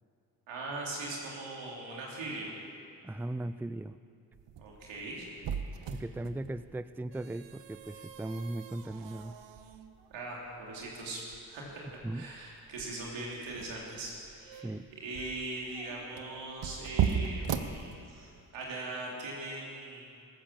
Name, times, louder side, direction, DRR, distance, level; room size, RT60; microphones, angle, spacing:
voice 1, 0.5-2.5 4.6-5.3 5.9-6.0 10.1-14.7 15.0-20.0, right 2 dB, 85° right, -3 dB, 3.2 m, -40 dB
voice 2, 3.0-4.0 5.9-9.4 12.0-12.3 14.6-14.9, right 2 dB, 5° right, 14 dB, 0.4 m, -38 dB
sound 1, 4.3-18.5, right 8 dB, 70° right, 1.0 m, -38 dB
19.5 x 8.8 x 7.4 m, 2.5 s
supercardioid pair, 45°, 44 cm